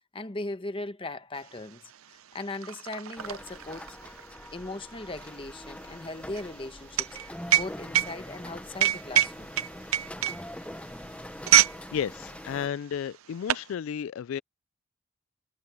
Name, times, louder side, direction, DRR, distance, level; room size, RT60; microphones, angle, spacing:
voice 1, 0.1-4.2 4.5-9.5 10.2-10.3, left 2 dB, 25° left, 1.0 m, -39 dB
sound 1, 1.5-1.6 1.9-11.8 12.1-12.4 13.0-13.7, right 12 dB, 85° right, 0.6 m, -26 dB
sound 2, 3.2-12.7, left 1 dB, 5° left, 0.7 m, -43 dB
voice 2, 11.9-14.4, left 8 dB, 75° left, 0.3 m, -33 dB
head